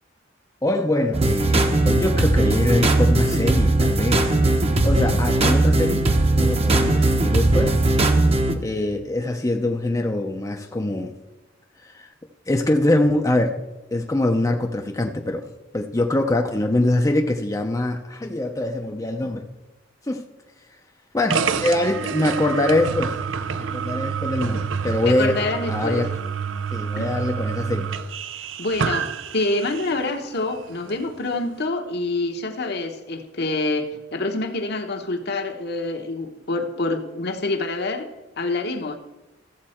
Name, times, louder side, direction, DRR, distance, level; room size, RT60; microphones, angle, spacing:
voice 1, 0.6-4.4 4.8-6.1 6.3-7.8 8.6-11.1 11.8-12.1 12.5-13.6 13.9-19.5 20.1-20.2 21.1-23.2 23.6-25.4 25.7-26.1 26.7-27.9, left 1 dB, 15° left, 0.6 m, -23 dB
sound 1, 1.1-8.6, right 2 dB, 30° right, 1.0 m, -19 dB
sound 2, 21.3-30.0, right 6 dB, 80° right, 0.6 m, -28 dB
voice 2, 25.0-26.1 27.0-27.1 28.6-38.1 38.4-39.0, left 2 dB, 60° left, 1.1 m, -26 dB
14.5 x 7.4 x 4.3 m
head